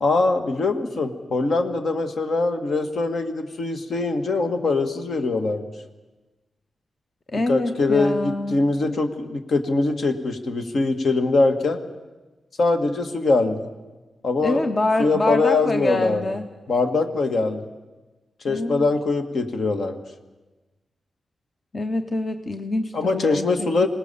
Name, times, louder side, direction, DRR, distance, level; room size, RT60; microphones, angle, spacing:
voice 1, 0.0-5.7 7.5-11.8 12.6-13.7 14.2-14.7 15.0-16.3 16.7-17.6 18.4-20.0 22.9-23.9, left 3 dB, 65° left, 6 dB, 1.9 m, -22 dB
voice 2, 7.3-8.6 14.4-16.5 18.5-18.9 21.7-23.5 23.8-23.9, left 2 dB, 40° left, 7 dB, 0.9 m, -25 dB
26.0 x 19.0 x 7.0 m, 1.2 s
wide cardioid pair, 110°, 0 cm